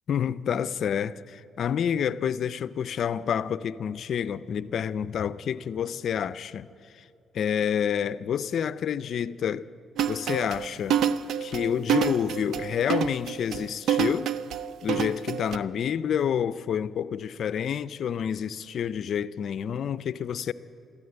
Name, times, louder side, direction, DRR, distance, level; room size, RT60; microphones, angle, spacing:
voice 1, 0.1-6.7 6.9-7.0 7.3-9.7 10.1-11.0 11.4-14.3 14.8-20.5, left 8 dB, 65° left, 0.4 m, -28 dB
sound 1, 10.0-15.6, right 9 dB, 70° right, 0.5 m, -27 dB
14.5 x 13.0 x 7.9 m
cardioid pair, 90°, 0 cm